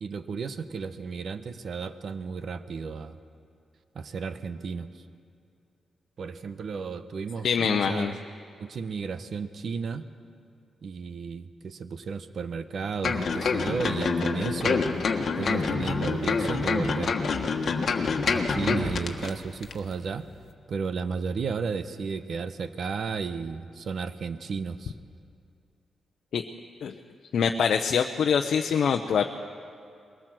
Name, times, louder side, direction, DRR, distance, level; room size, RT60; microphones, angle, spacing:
voice 1, 0.0-3.2 3.9-4.9 6.2-8.2 8.6-10.0 10.8-14.9 15.4-17.2 18.3-20.3 20.7-24.9, right 5 dB, 60° right, 12 dB, 0.9 m, -33 dB
voice 2, 7.4-8.1 26.3-26.4 26.8-26.9 27.3-29.3, left 7 dB, 70° left, 4 dB, 0.7 m, -24 dB
sound 1, 13.0-19.3 19.6-19.7, left 4 dB, 50° left, 1.4 m, -27 dB
21.5 x 18.0 x 7.7 m, 2.5 s
wide cardioid pair, 125°, 0 cm